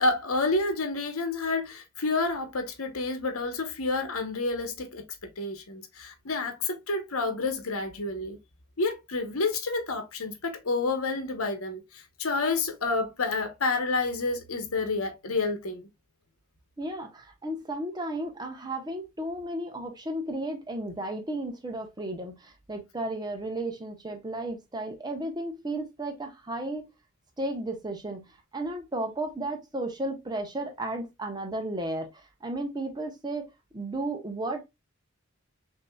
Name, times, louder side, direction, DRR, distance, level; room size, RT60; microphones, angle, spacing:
voice 1, 0.0-8.4 8.8-15.9, left 3 dB, 80° left, 1.0 m, -29 dB
voice 2, 16.8-26.9 27.4-34.6, right 1 dB, 20° right, 0.9 m, -34 dB
5.9 x 2.8 x 2.3 m
head